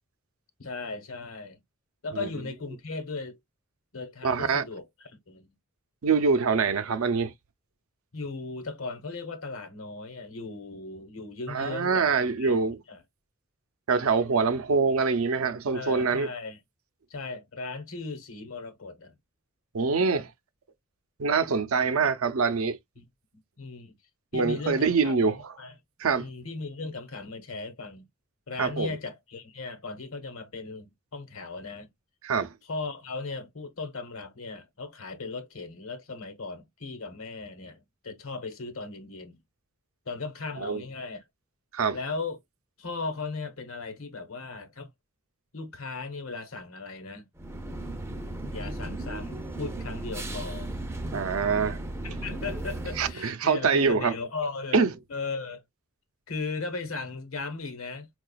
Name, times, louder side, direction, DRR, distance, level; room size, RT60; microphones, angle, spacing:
voice 1, 0.6-1.6 2.0-3.4 3.9-5.5 8.1-12.6 12.9-13.0 15.7-16.6 17.1-19.1 23.0-23.1 23.6-23.9 24.3-25.8 26.1-28.1 28.5-31.9 32.6-39.4 40.1-41.2 41.9-42.4 42.8-44.9 45.5-47.3 48.5-50.7 52.0-55.6 56.3-58.1, left 3 dB, 70° left, 1.0 m, -37 dB
voice 2, 4.2-4.6 6.0-7.3 11.5-12.8 13.9-16.3 19.7-20.3 21.2-22.8 24.3-25.5 26.0-26.3 28.6-28.9 32.2-32.5 40.6-40.8 41.7-42.0 51.1-51.8 53.0-54.1 54.7-54.9, right 5 dB, 75° right, 0.6 m, -24 dB
sound 1, 47.4-53.1, right 1 dB, 10° right, 0.5 m, -35 dB
4.7 x 2.3 x 2.3 m
head